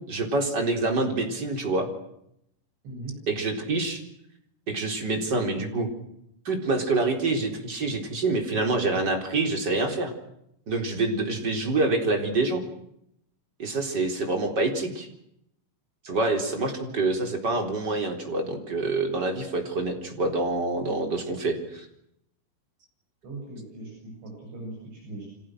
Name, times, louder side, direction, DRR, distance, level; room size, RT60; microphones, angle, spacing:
voice 1, 0.1-1.9 3.3-4.0 4.7-5.9 6.4-10.1 10.7-12.6 13.6-15.1 16.0-21.9, right 3 dB, 20° right, 4 dB, 4.1 m, -26 dB
voice 2, 2.8-3.2 23.2-25.3, right 2 dB, 60° right, 0 dB, 10.5 m, -39 dB
30.0 x 25.5 x 6.4 m, 0.77 s
omnidirectional pair, 5.9 m